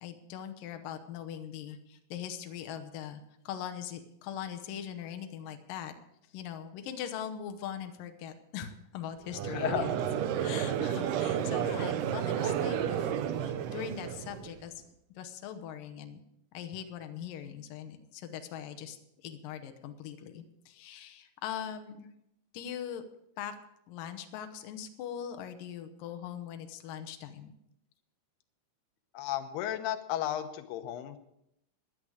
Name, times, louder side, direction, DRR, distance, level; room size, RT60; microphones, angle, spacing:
voice 1, 0.0-5.9 6.3-9.9 10.3-14.8 15.2-16.2 16.5-19.0 19.2-22.1 22.5-23.0 23.4-23.5 23.9-27.5, left 9 dB, 70° left, 8 dB, 2.4 m, -41 dB
Conversation / Crowd, 9.3-14.6, right 9 dB, 75° right, 1.9 m, -31 dB
voice 2, 9.4-9.9 29.1-31.2, left 11 dB, 90° left, 9 dB, 2.9 m, -33 dB
17.0 x 10.5 x 4.9 m, 0.80 s
omnidirectional pair, 4.6 m